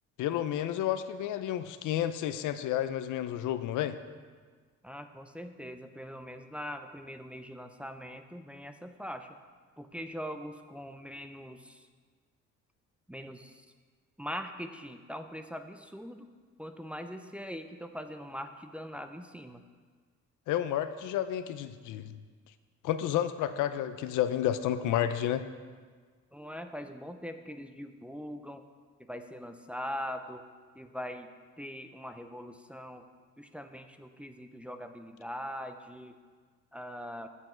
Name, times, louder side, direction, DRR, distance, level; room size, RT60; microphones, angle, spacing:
voice 1, 0.2-4.0 20.5-22.2 22.8-25.5, left 11 dB, 85° left, 11 dB, 0.6 m, -31 dB
voice 2, 4.8-9.4 9.8-11.8 13.1-13.6 14.2-16.3 16.6-19.6 26.3-28.6 29.0-30.4 30.7-31.3 31.6-33.1 33.4-36.2 36.7-37.3, equal, 5° right, 6 dB, 0.5 m, -42 dB
8.2 x 7.6 x 4.4 m, 1.5 s
cardioid pair, 90°, 30 cm